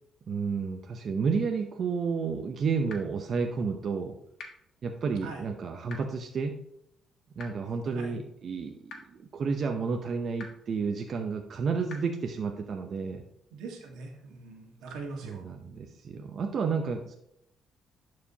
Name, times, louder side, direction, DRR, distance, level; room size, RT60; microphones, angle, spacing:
voice 1, 0.3-4.1 4.8-6.6 7.4-13.2 15.2-17.1, right 5 dB, 55° right, 4 dB, 0.7 m, -31 dB
sound 1, 2.9-3.0 4.4-4.5 5.9-6.0 7.4-7.5 8.9-9.0 10.4-10.5 11.9-12.0, left 4 dB, 65° left, 1.5 m, -42 dB
voice 2, 5.0-5.5 7.9-8.2 13.5-15.4, right 4 dB, 90° right, 1 dB, 1.7 m, -42 dB
11.0 x 4.8 x 2.9 m, 0.78 s
cardioid pair, 90°, 0 cm